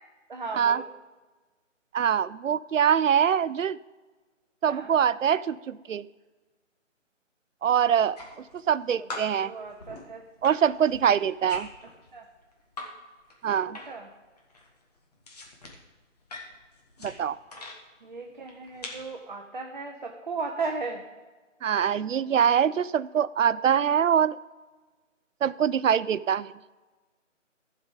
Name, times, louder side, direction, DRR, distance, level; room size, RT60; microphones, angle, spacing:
voice 1, 0.3-0.8 4.7-4.9 9.4-10.2 12.1-12.2 13.6-14.1 18.0-21.0 22.1-22.7, right 4 dB, 40° right, 2 dB, 0.8 m, -36 dB
voice 2, 1.9-3.8 4.6-6.0 7.6-9.5 10.4-11.7 13.4-13.8 17.0-17.4 21.6-24.4 25.4-26.5, right 8 dB, 75° right, 18 dB, 0.5 m, -24 dB
sound 1, 7.9-8.8 9.1-12.9 13.2-14.1 14.4-17.8 18.4-19.1, left 2 dB, 30° left, 1.5 m, -43 dB
15.0 x 5.4 x 5.1 m, 1.3 s
figure-of-eight pair, 155°, 39 cm